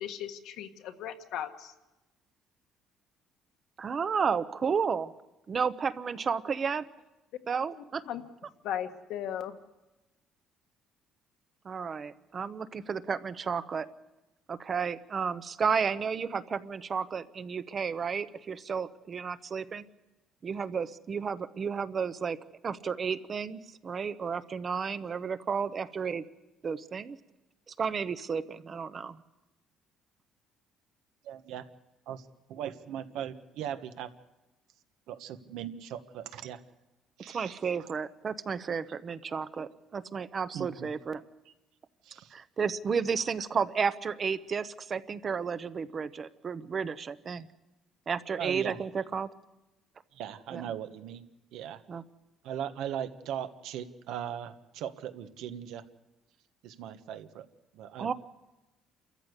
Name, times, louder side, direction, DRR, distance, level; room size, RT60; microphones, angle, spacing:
voice 1, 0.0-1.7 7.8-8.2 8.6-9.6, left 10 dB, 75° left, 7 dB, 1.6 m, -37 dB
voice 2, 3.8-5.1 5.5-6.8 7.5-8.0 11.6-13.9 14.5-19.9 20.4-22.4 22.6-26.2 26.6-27.2 27.7-29.2 37.3-41.2 42.3-47.5 48.1-49.3 50.5-50.6 51.9-52.0 58.0-58.1, right 6 dB, 30° right, 14 dB, 0.8 m, -32 dB
voice 3, 31.2-31.6 32.1-34.1 35.1-36.6 37.2-37.6 40.5-40.9 42.0-42.3 48.4-48.8 50.1-51.2 51.5-51.8 52.4-55.8 56.6-57.4 57.7-58.1, right 9 dB, 80° right, 9 dB, 1.3 m, -39 dB
28.5 x 14.0 x 8.2 m, 1.0 s
cardioid pair, 150°, 0 cm